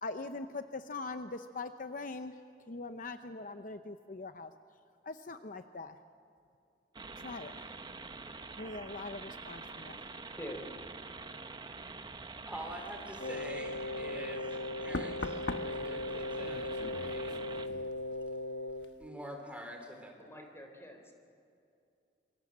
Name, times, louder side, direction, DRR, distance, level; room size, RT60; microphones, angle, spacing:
voice 1, 0.0-2.3 2.7-4.5 5.0-6.0 7.2-7.7 8.6-10.0, left 3 dB, 50° left, 8 dB, 0.8 m, -42 dB
sound 1, 6.9-17.7, right 3 dB, 25° right, 0.9 m, -46 dB
voice 2, 10.3-10.6 20.2-21.1, equal, 15° left, 3 dB, 3.7 m, -45 dB
voice 3, 12.5-17.5 19.0-20.2, equal, 10° right, 3 dB, 3.6 m, -46 dB
Wind instrument woodwind instrument, 13.2-18.9, left 2 dB, 85° left, 1.3 m, -38 dB
Knock, 13.9-14.1 14.9-18.4 18.7-19.1, left 2 dB, 70° left, 1.2 m, -42 dB
26.5 x 24.0 x 7.5 m, 2.5 s
head